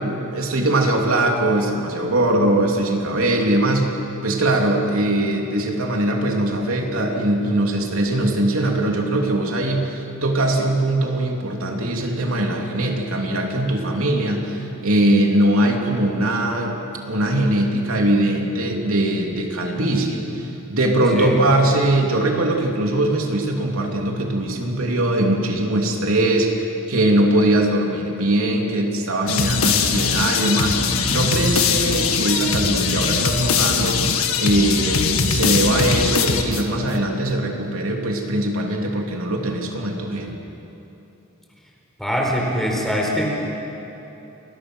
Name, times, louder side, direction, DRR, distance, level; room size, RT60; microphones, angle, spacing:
voice 1, 0.0-4.0 4.2-16.8 17.0-30.8 31.1-34.0 34.4-40.4, right 1 dB, 85° right, 1 dB, 3.0 m, -21 dB
sound 1, 29.3-36.9, left 5 dB, 85° left, 1.7 m, -21 dB
voice 2, 42.0-43.2, equal, ahead, -2 dB, 4.4 m, -23 dB
30.0 x 21.5 x 6.4 m, 3.0 s
head